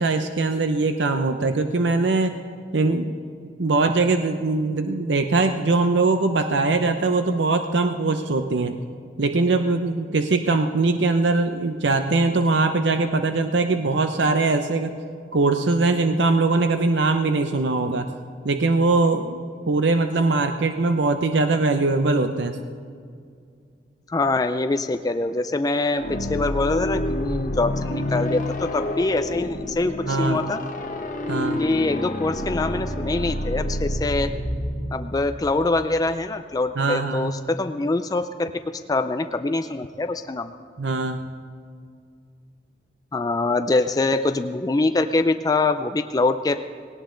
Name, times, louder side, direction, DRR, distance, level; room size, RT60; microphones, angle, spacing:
voice 1, 0.0-2.4 2.7-3.2 3.6-8.8 9.2-15.0 15.3-18.1 18.4-22.6 30.1-30.4 31.3-31.6 36.8-37.3 40.8-41.2, right 3 dB, 85° right, 7 dB, 0.7 m, -21 dB
voice 2, 24.1-30.6 31.6-34.3 34.9-38.5 38.9-40.5 43.1-46.6, left 2 dB, 20° left, 8 dB, 0.4 m, -24 dB
sound 1, 25.9-35.7, left 1 dB, 45° left, 1.1 m, -28 dB
18.0 x 18.0 x 3.9 m, 2.2 s
head